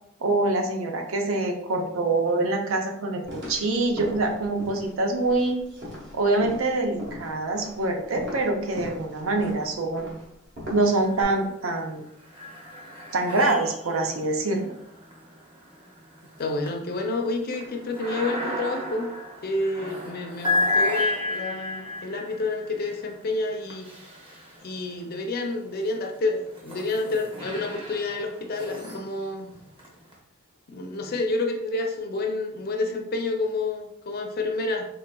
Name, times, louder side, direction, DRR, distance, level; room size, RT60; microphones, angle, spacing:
voice 1, 0.2-5.6 6.1-10.1 10.7-12.0 13.1-14.7, right 2 dB, 75° right, 3 dB, 0.6 m, -25 dB
sound 1, 3.2-11.2, left 1 dB, 60° right, 1.1 m, -40 dB
sound 2, 10.8-11.5 11.9-25.0 25.7-30.1, left 2 dB, 25° right, 0.8 m, -33 dB
voice 2, 16.4-19.1 19.4-23.8 24.6-29.5 30.7-34.9, left 2 dB, 45° left, 3 dB, 0.5 m, -29 dB
3.9 x 3.2 x 2.2 m, 0.74 s
head